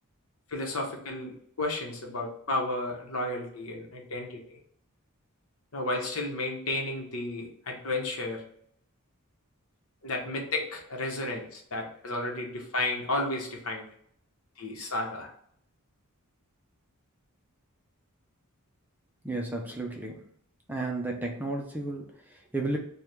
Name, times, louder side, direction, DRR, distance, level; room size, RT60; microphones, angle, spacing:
voice 1, 0.5-4.6 5.7-8.4 10.0-13.9 14.6-15.3, left 2 dB, 65° left, 1 dB, 1.0 m, -32 dB
voice 2, 19.2-20.2 20.7-22.8, right 2 dB, 10° right, 1 dB, 0.5 m, -33 dB
4.7 x 2.3 x 3.4 m, 0.66 s
head